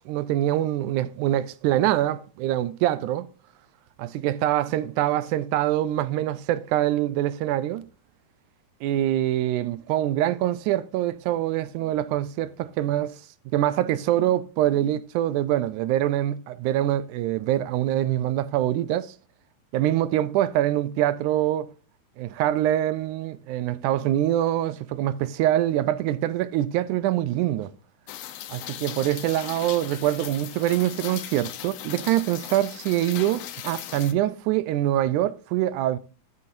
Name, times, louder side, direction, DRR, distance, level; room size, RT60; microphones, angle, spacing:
voice 1, 0.0-3.3 4.0-7.8 8.8-13.2 13.5-19.1 19.7-21.7 22.2-27.7 28.5-36.0, right 13 dB, 80° right, 2.0 m, -24 dB
Rain, 28.1-34.1, left 12 dB, 80° left, 1.4 m, -38 dB
16.0 x 5.8 x 2.5 m
omnidirectional pair, 3.5 m